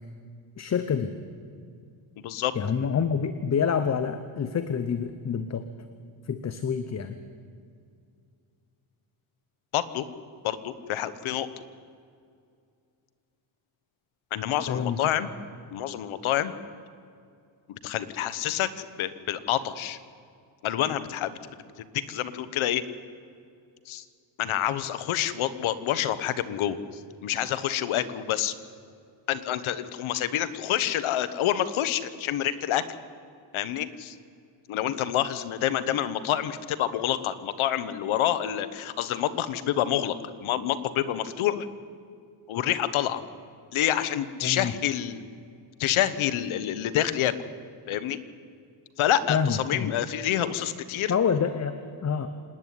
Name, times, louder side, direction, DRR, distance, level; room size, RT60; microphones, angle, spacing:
voice 1, 0.6-1.1 2.5-5.6 6.3-7.1 14.7-15.0 44.4-44.7 49.3-49.9 51.1-52.3, left 6 dB, 35° left, 10 dB, 0.9 m, -27 dB
voice 2, 2.2-2.5 9.7-10.0 10.4-11.5 14.3-15.3 15.7-16.5 17.7-20.0 20.6-21.4 21.8-22.8 23.9-24.0 24.4-26.8 27.2-28.5 29.3-32.8 33.5-34.1 34.7-41.7 42.5-43.2 43.7-45.2 45.8-47.3 47.9-48.2 49.0-51.1, left 11 dB, 85° left, 13 dB, 1.2 m, -27 dB
27.0 x 10.0 x 9.6 m, 2.4 s
cardioid pair, 140°, 47 cm